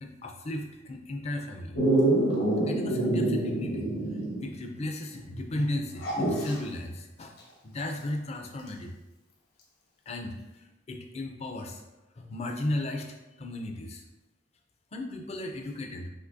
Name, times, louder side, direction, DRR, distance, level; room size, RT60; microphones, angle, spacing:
voice 1, 0.0-1.8 2.6-3.9 4.4-7.3 7.6-8.9 10.1-10.4 10.9-11.8 12.2-14.0 14.9-16.1, left 1 dB, 35° left, 3 dB, 0.5 m, -35 dB
Dog, 1.8-4.5 4.8-4.9 6.0-6.6 8.7-8.8, right 1 dB, 55° left, 1.1 m, -26 dB
5.7 x 3.1 x 2.6 m, 1.0 s
head